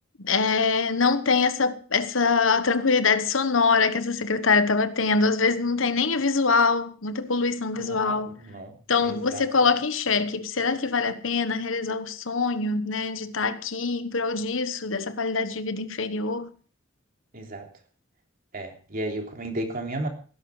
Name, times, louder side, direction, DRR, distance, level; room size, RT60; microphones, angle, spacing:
voice 1, 0.2-8.3 8.9-16.5, left 4 dB, 70° left, 1.2 m, -24 dB
voice 2, 7.8-9.4 17.3-17.7 18.5-20.1, right 1 dB, 45° right, 3.4 m, -34 dB
17.5 x 11.0 x 4.8 m
head